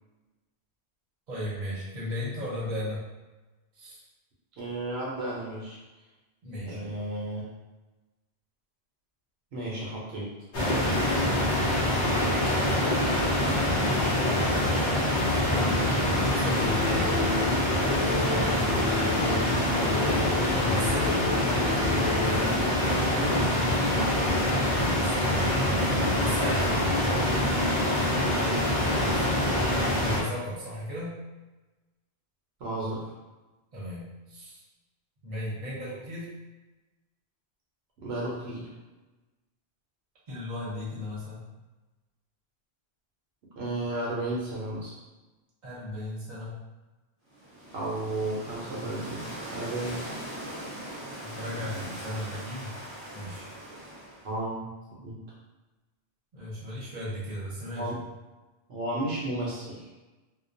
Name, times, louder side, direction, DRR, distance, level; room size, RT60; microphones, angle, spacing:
voice 1, 1.3-3.0 3.7-4.0 6.4-7.0 14.9-17.1 20.5-21.2 24.8-27.0 29.1-29.3 30.0-31.2 33.7-34.6 35.2-36.3 40.3-41.4 45.6-46.6 51.1-52.7 53.1-53.5 56.3-57.9, left 1 dB, 45° right, -7 dB, 0.9 m, -36 dB
voice 2, 4.6-5.8 6.6-7.4 9.5-10.3 18.8-19.1 23.1-24.1 28.2-29.0 32.6-33.1 38.0-38.7 43.6-44.9 47.7-50.0 51.6-51.9 54.2-54.7 55.0-55.2 57.8-58.0 58.7-59.9, right 1 dB, 75° right, -6 dB, 0.9 m, -33 dB
sound 1, 10.5-30.2, left 1 dB, 55° left, 0.7 m, -25 dB
sound 2, 16.5-22.6, left 4 dB, 75° left, 1.0 m, -33 dB
sound 3, 47.3-54.4, right 1 dB, 15° left, 0.9 m, -40 dB
2.2 x 2.2 x 2.5 m, 1.1 s
omnidirectional pair, 1.1 m